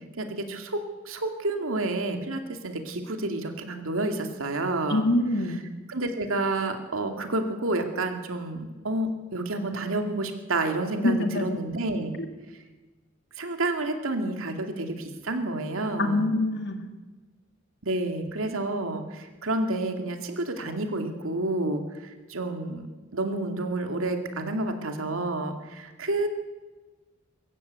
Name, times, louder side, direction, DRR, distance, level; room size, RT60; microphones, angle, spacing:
voice 1, 0.2-5.0 5.9-12.1 13.4-16.3 17.8-22.9 23.1-26.3, right 2 dB, 85° right, 5 dB, 2.4 m, -29 dB
voice 2, 4.9-5.6 11.0-11.6 16.0-16.8, left 1 dB, 60° left, 6 dB, 2.2 m, -24 dB
23.5 x 14.0 x 8.1 m, 1.3 s
head